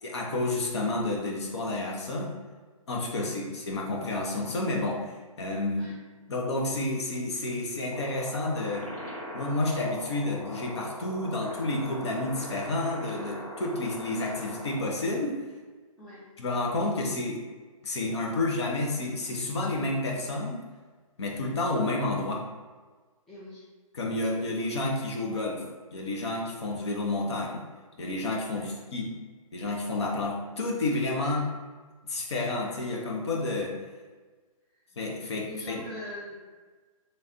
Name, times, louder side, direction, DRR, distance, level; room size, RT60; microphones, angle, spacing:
voice 1, 0.0-2.3 2.9-5.9 6.3-8.9 9.3-15.4 16.4-17.4 17.8-20.6 21.2-22.5 23.9-25.6 25.9-27.6 28.0-29.1 29.5-31.4 32.1-33.8 35.0-35.8, left 2 dB, 50° left, -1 dB, 0.8 m, -30 dB
sound 1, 7.9-14.9, equal, 85° left, 1.0 m, -41 dB
voice 2, 23.3-23.6 28.5-28.7 31.2-31.4 34.7-34.8 35.5-36.3, equal, ahead, -10 dB, 0.4 m, -43 dB
3.3 x 2.4 x 4.1 m, 1.4 s
figure-of-eight pair, 135°, 18 cm